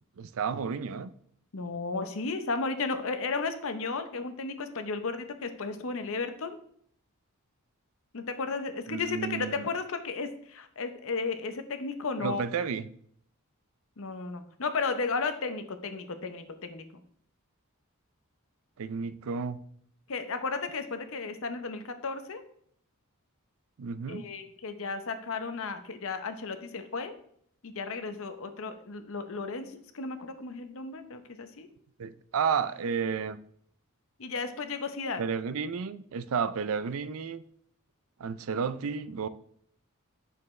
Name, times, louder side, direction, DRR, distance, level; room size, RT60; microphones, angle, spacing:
voice 1, 0.2-1.1 8.9-9.7 12.2-12.9 18.8-19.6 23.8-24.3 32.0-33.4 35.2-37.4 38.2-39.3, right 6 dB, 65° right, 0.4 m, -32 dB
voice 2, 1.5-6.6 8.1-12.5 14.0-17.0 20.1-22.4 24.1-27.1 27.6-31.7 34.2-35.2, left 4 dB, 65° left, 0.8 m, -34 dB
8.6 x 6.6 x 3.2 m
head